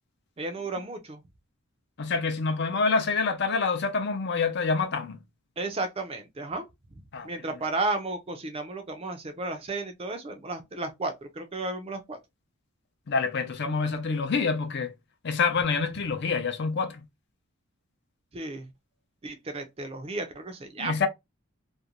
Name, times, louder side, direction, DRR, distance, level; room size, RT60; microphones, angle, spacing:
voice 1, 0.4-1.2 5.6-6.7 7.2-12.2 18.3-18.7 19.2-21.1, right 2 dB, 25° right, 0.4 m, -33 dB
voice 2, 2.0-5.2 7.1-7.3 13.1-14.9 15.2-17.0 20.8-21.1, left 4 dB, 50° left, 0.5 m, -27 dB
2.5 x 2.1 x 2.8 m
head